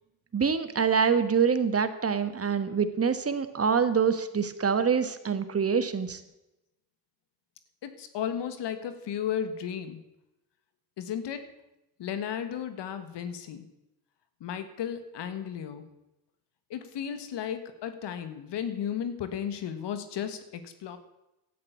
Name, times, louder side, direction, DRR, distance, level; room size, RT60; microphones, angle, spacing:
voice 1, 0.3-6.2, right 6 dB, 35° right, 10 dB, 1.5 m, -25 dB
voice 2, 7.8-10.0 11.0-11.4 12.0-13.6 14.4-15.8 16.7-21.0, left 9 dB, 70° left, 10 dB, 1.7 m, -34 dB
12.0 x 8.6 x 8.3 m, 0.93 s
supercardioid pair, 70°, 43 cm